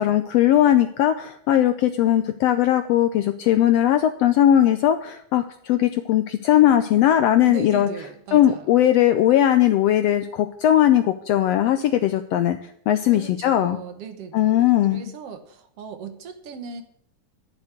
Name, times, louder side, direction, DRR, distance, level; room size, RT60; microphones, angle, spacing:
voice 1, 0.0-7.9 8.3-12.6 12.9-13.8 14.3-15.1, left 11 dB, 90° left, 9 dB, 1.4 m, -19 dB
voice 2, 7.5-8.8 13.1-16.8, right 5 dB, 60° right, 8 dB, 1.9 m, -38 dB
10.5 x 6.9 x 8.1 m, 0.69 s
omnidirectional pair, 3.6 m